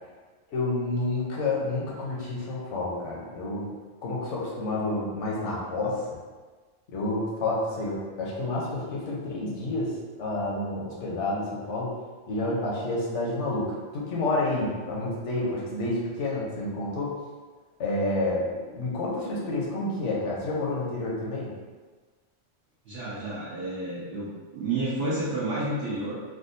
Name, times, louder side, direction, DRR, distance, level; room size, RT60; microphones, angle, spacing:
voice 1, 0.5-3.8 4.0-6.0 6.9-9.9 10.2-11.9 12.3-17.2 17.8-18.5 18.7-21.5, left 2 dB, 75° left, -4 dB, 1.1 m, -29 dB
voice 2, 22.8-26.1, right 2 dB, 60° right, -9 dB, 0.9 m, -31 dB
3.6 x 2.3 x 2.6 m, 1.4 s
omnidirectional pair, 1.3 m